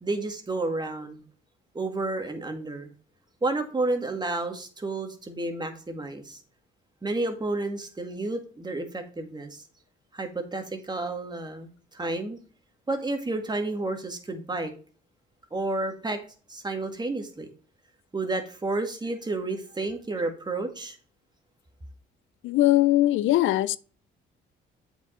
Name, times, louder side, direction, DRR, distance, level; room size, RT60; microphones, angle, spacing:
voice 1, 0.0-1.2 1.7-2.9 3.4-6.4 7.0-9.6 10.1-12.4 12.9-14.7 15.5-16.2 16.5-17.5 18.1-21.0, right 2 dB, 20° right, 1.9 m, -31 dB
voice 2, 22.4-23.8, left 15 dB, 80° left, 0.5 m, -21 dB
7.9 x 5.1 x 4.3 m
cardioid pair, 90°, 20 cm